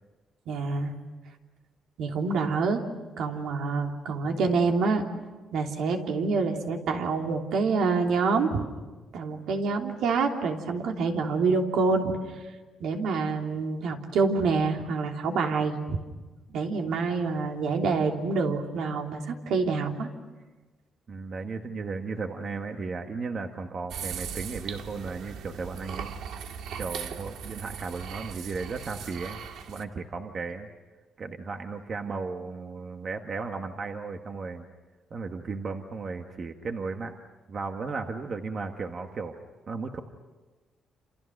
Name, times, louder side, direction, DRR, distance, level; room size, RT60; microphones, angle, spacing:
voice 1, 0.5-0.9 2.0-2.8 3.2-5.0 5.5-8.6 9.1-12.1 12.8-16.0 16.5-20.1, right 4 dB, 75° right, 2 dB, 3.2 m, -26 dB
voice 2, 21.1-26.1 26.8-29.4 29.7-30.7 31.2-34.6 35.1-37.1 37.5-39.4 39.7-40.0, right 4 dB, 35° right, 5 dB, 1.4 m, -35 dB
sound 1, 23.9-29.8, right 7 dB, 90° right, 1.8 m, -38 dB
28.5 x 28.5 x 6.5 m, 1.3 s
cardioid pair, 165°, 0 cm